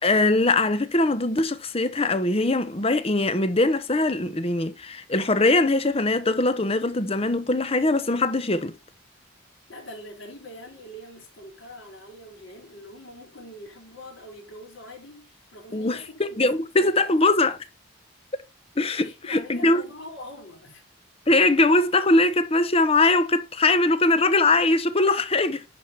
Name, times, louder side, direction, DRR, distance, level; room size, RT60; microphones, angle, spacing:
voice 1, 0.0-8.8 15.7-17.6 18.8-19.8 21.3-25.6, left 2 dB, 30° left, 0.9 m, -21 dB
voice 2, 9.7-17.3 19.0-20.8, left 1 dB, 65° left, 4.8 m, -43 dB
10.5 x 4.7 x 5.7 m
head